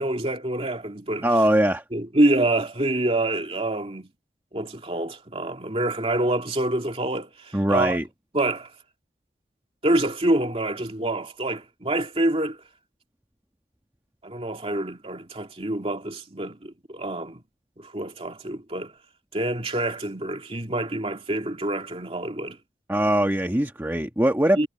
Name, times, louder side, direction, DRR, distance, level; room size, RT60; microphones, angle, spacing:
voice 1, 0.0-1.3 1.9-4.1 4.5-8.0 8.3-8.7 9.8-12.6 14.2-17.4 17.8-18.9 19.3-22.6 24.6-24.7, right 1 dB, 30° right, 2.5 m, -26 dB
voice 2, 1.2-1.8 7.5-8.0 22.9-24.7, right 1 dB, 10° right, 1.3 m, -21 dB
head